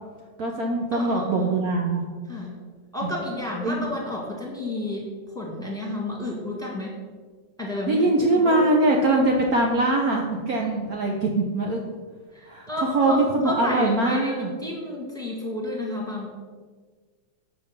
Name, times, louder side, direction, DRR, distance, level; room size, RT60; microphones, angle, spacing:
voice 1, 0.4-2.1 3.0-3.1 3.6-3.8 7.9-11.8 12.5-12.7 12.9-14.5, right 2 dB, 60° right, 0 dB, 1.2 m, -22 dB
voice 2, 0.9-1.5 2.3-2.6 2.9-5.0 5.3-7.0 7.6-8.0 8.3-8.6 12.3-16.3, left 1 dB, ahead, -3 dB, 1.8 m, -31 dB
7.6 x 5.1 x 6.7 m, 1.5 s
omnidirectional pair, 2.0 m